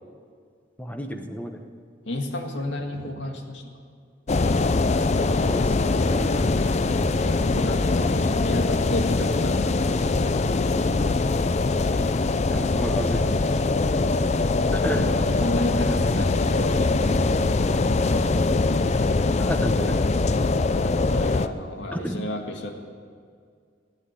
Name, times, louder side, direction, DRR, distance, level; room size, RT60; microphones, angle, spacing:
voice 1, 0.8-1.6 5.3-6.3 12.5-13.7 14.7-15.1 19.4-20.1 21.9-22.2, equal, 10° left, 5 dB, 1.0 m, -32 dB
voice 2, 2.1-3.6 7.1-10.9 14.9-17.2 21.1-22.7, left 1 dB, 85° left, 2 dB, 2.1 m, -32 dB
sound 1, 4.3-21.5, left 3 dB, 40° left, 0.5 m, -22 dB
16.5 x 9.7 x 8.5 m, 2.2 s
head